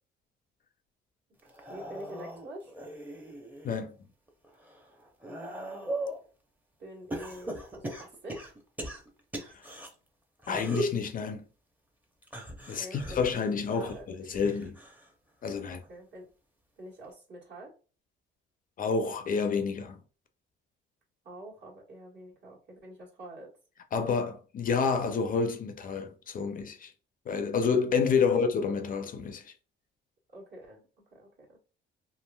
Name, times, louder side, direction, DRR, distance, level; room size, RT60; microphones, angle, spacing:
sound 1, 1.4-3.8 4.3-6.2 7.1-9.9 10.4-11.0 12.2-15.1 15.5-15.9 17.0-17.1, right 1 dB, 10° right, 0.6 m, -39 dB
voice 1, 1.4-2.7 5.2-5.7 6.8-8.5 12.7-14.1 15.7-16.3 16.8-17.7 21.2-23.5 28.2-28.3 30.3-31.6, right 1 dB, 55° right, 1.4 m, -47 dB
voice 2, 10.5-11.4 12.7-14.8 15.4-15.8 18.8-20.0 23.9-26.9 27.3-29.5, left 5 dB, 40° left, 0.4 m, -29 dB
3.0 x 2.4 x 2.2 m
cardioid pair, 100°, 21 cm